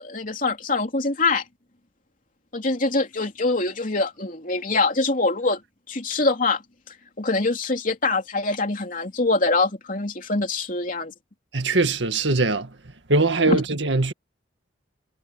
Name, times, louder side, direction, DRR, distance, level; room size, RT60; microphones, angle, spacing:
voice 1, 0.0-1.4 2.5-5.6 5.9-6.6 7.2-11.1 13.5-13.6, left 3 dB, 45° left, 3.3 m, -24 dB
voice 2, 11.5-12.7 13.1-14.1, right 3 dB, 75° right, 1.9 m, -21 dB
head